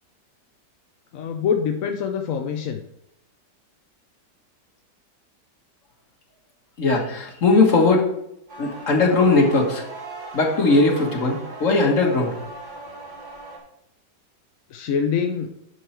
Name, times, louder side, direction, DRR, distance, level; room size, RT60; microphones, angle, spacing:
voice 1, 1.1-2.8 14.7-15.5, left 7 dB, 65° left, 4 dB, 0.9 m, -25 dB
voice 2, 6.8-8.1 8.6-9.8 10.3-12.3, left 3 dB, 45° left, 1 dB, 1.8 m, -19 dB
sound 1, 8.5-13.6, right 2 dB, 25° right, 2.5 m, -38 dB
11.0 x 4.7 x 4.4 m, 0.80 s
omnidirectional pair, 1.9 m